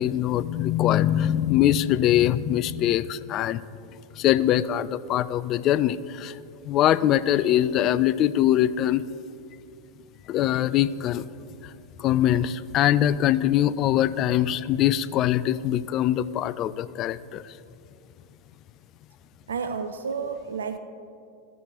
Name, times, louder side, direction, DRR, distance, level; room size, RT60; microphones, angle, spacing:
voice 1, 0.0-3.6 4.2-6.4 6.7-9.0 10.3-11.3 12.0-17.4, left 12 dB, 45° left, 16 dB, 0.3 m, -22 dB
voice 2, 19.5-20.8, right 5 dB, 85° right, 10 dB, 0.4 m, -31 dB
14.5 x 6.1 x 2.9 m, 2.5 s
hypercardioid pair, 95°, 0 cm